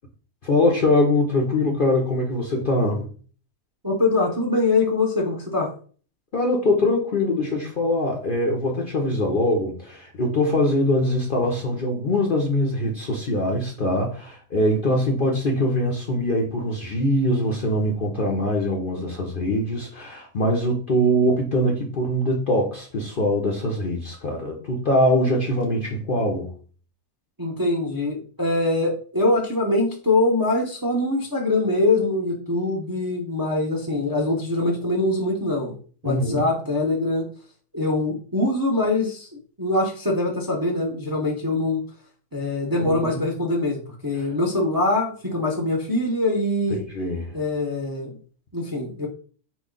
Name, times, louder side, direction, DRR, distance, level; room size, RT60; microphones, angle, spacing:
voice 1, 0.4-3.1 6.3-26.5 36.0-36.4 42.8-43.2 44.2-44.3 46.9-47.4, left 1 dB, 45° left, 0.8 m, -23 dB
voice 2, 3.8-5.7 27.4-35.7 36.0-37.2 37.7-41.8 42.3-46.8 47.3-48.2 48.5-49.1, left 2 dB, 20° right, 0.7 m, -23 dB
4.5 x 3.1 x 3.8 m
omnidirectional pair, 1.6 m